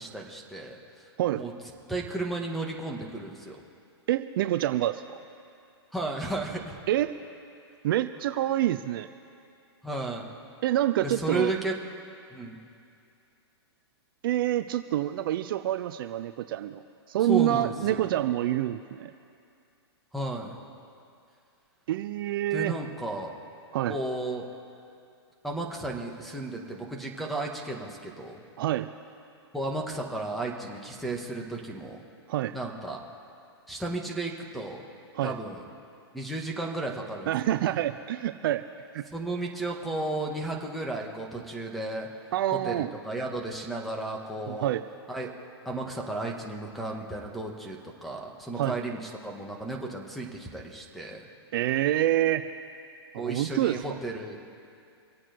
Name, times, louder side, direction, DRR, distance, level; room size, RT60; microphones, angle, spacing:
voice 1, 0.0-1.1 1.3-1.5 1.9-3.6 5.9-6.8 9.8-10.2 11.0-11.7 12.3-12.6 17.3-18.1 20.1-20.6 22.5-23.3 23.9-24.5 25.4-28.4 29.5-32.0 32.5-33.0 33.7-34.8 35.2-35.6 36.1-37.8 39.1-42.1 42.5-44.7 45.1-45.3 45.7-51.3 53.2-54.4, right 2 dB, ahead, 1 dB, 2.0 m, -34 dB
voice 2, 4.1-5.0 6.9-7.1 7.8-9.1 10.6-11.5 14.2-16.8 17.1-19.1 21.9-22.7 23.7-23.9 28.6-28.9 32.3-32.5 35.2-35.3 37.3-38.6 38.9-39.0 42.3-42.9 44.5-44.8 48.6-48.7 51.5-52.5 53.1-53.8, right 13 dB, 55° right, 10 dB, 0.6 m, -27 dB
25.5 x 8.8 x 4.6 m, 2.5 s
hypercardioid pair, 135°, 14 cm